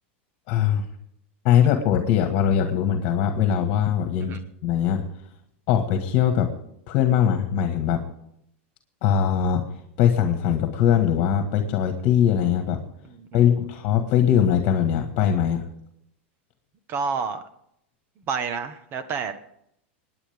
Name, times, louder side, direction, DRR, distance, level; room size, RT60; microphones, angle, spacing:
voice 1, 0.5-0.9 1.4-5.0 5.7-6.5 6.9-8.0 9.0-9.6 10.0-12.8 13.3-15.6, left 9 dB, 45° left, 6 dB, 1.8 m, -21 dB
voice 2, 13.0-13.4 16.9-17.4 18.3-19.3, right 5 dB, 35° right, 10 dB, 1.4 m, -29 dB
27.5 x 9.9 x 3.6 m, 0.75 s
supercardioid pair, 140°, 7 cm